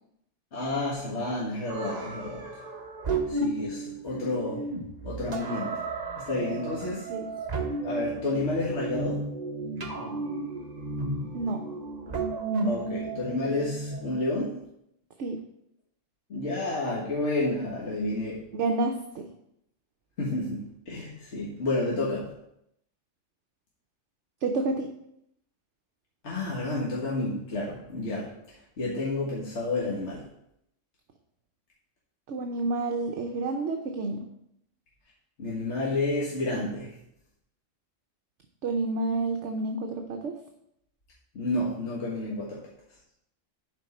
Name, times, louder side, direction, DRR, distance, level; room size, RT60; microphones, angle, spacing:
voice 1, 0.5-2.5 3.3-4.7 5.0-5.8 6.1-7.1 7.8-9.2 12.6-14.6 16.3-18.5 20.2-22.3 26.2-30.2 35.4-36.9 41.3-42.7, left 2 dB, 55° left, -5 dB, 1.7 m, -30 dB
sound 1, 1.7-14.3, right 3 dB, 35° right, 0.9 m, -33 dB
voice 2, 18.5-19.3 24.4-24.9 32.3-34.3 38.6-40.3, right 3 dB, 65° right, 4 dB, 1.0 m, -29 dB
11.0 x 4.6 x 4.2 m, 0.77 s
omnidirectional pair, 1.4 m